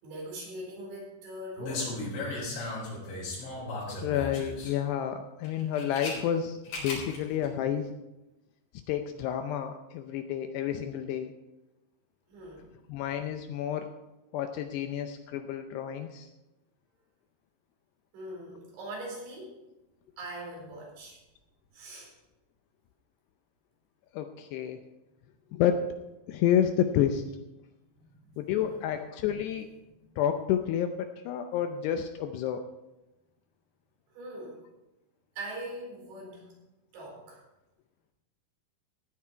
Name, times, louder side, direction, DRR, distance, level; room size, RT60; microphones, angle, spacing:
voice 1, 0.0-2.0 12.3-12.7 18.1-19.6 20.2-21.2 21.7-22.1 28.0-28.9 29.9-30.1 34.1-34.6 35.4-36.5 36.9-37.4, right 1 dB, 80° right, -3 dB, 6.7 m, -42 dB
sound 1, 1.6-4.7 5.4-6.1 6.6-7.2 7.4-7.5, left 2 dB, 60° left, 6.0 m, -36 dB
voice 2, 3.9-7.9 8.9-11.3 12.9-13.9 14.3-16.3 24.1-24.8 25.5-25.8 26.3-27.2 28.4-29.7 30.2-32.6, left 9 dB, 80° left, 7 dB, 2.5 m, -30 dB
16.0 x 9.9 x 4.5 m, 0.98 s
omnidirectional pair, 5.3 m